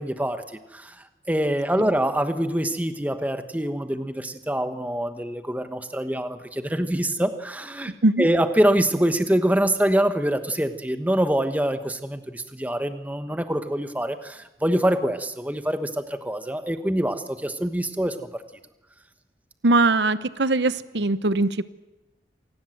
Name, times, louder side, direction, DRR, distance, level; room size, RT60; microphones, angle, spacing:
voice 1, 0.0-7.9 8.2-18.4, right 1 dB, 10° right, 9 dB, 1.2 m, -25 dB
voice 2, 19.6-21.6, right 2 dB, 80° right, 14 dB, 0.9 m, -21 dB
26.5 x 18.5 x 7.8 m, 1.0 s
head